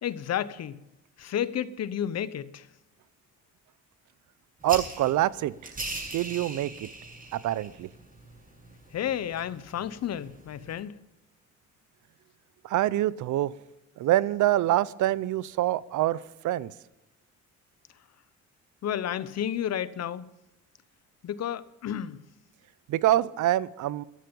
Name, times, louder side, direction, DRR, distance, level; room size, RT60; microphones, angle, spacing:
voice 1, 0.0-0.8 1.2-2.7 8.9-11.0 18.8-20.2 21.2-22.2, left 10 dB, 60° left, 0.9 m, -31 dB
sound 1, 4.6-10.8, right 2 dB, 30° right, 7.0 m, -41 dB
voice 2, 4.6-5.7 6.1-6.9 7.3-7.9 12.6-13.5 14.0-16.7 22.9-24.0, right 14 dB, 75° right, 0.6 m, -25 dB
14.0 x 13.0 x 5.3 m
cardioid pair, 90°, 30 cm